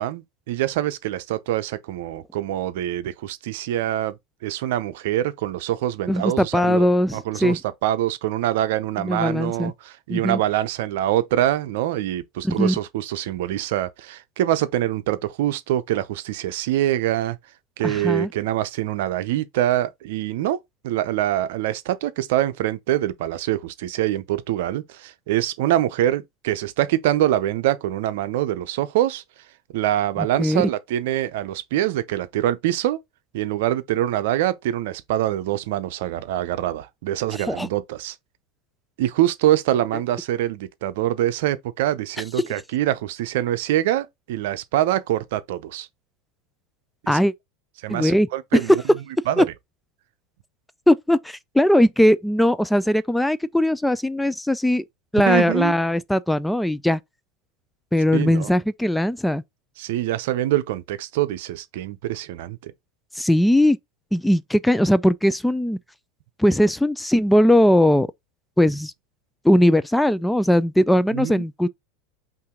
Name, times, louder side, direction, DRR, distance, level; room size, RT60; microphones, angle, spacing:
voice 1, 0.0-4.2 4.4-17.4 17.8-20.6 20.8-29.2 29.7-33.0 33.3-38.2 39.0-45.9 47.0-47.2 47.8-48.8 49.3-49.4 55.3-55.7 58.1-58.5 59.8-62.7 71.1-71.5, right 13 dB, 70° right, 0.6 m, -24 dB
voice 2, 6.1-7.6 9.0-9.7 10.1-10.4 12.4-12.7 17.8-18.3 30.2-30.6 37.5-37.7 47.1-47.3 47.9-48.3 48.5-48.8 49.4-49.5 50.9-54.8 55.1-57.0 57.9-59.4 63.1-63.8 64.1-65.8 66.4-68.1 68.6-68.9 69.4-71.7, left 1 dB, 5° left, 0.3 m, -19 dB
5.6 x 2.6 x 3.7 m
hypercardioid pair, 100°, 0 cm